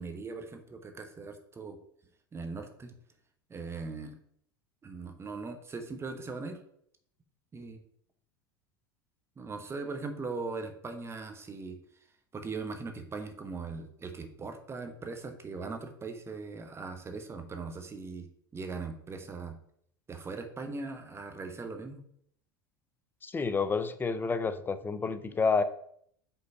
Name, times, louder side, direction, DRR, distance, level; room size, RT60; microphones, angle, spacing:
voice 1, 0.0-1.8 2.3-2.9 3.5-4.2 4.8-6.6 7.5-7.8 9.4-11.8 12.3-18.3 18.5-19.6 20.1-22.0, right 4 dB, 20° right, 7 dB, 1.1 m, -40 dB
voice 2, 23.2-25.6, left 4 dB, 15° left, 11 dB, 0.6 m, -29 dB
5.5 x 3.9 x 5.8 m, 0.67 s
hypercardioid pair, 90°, 12 cm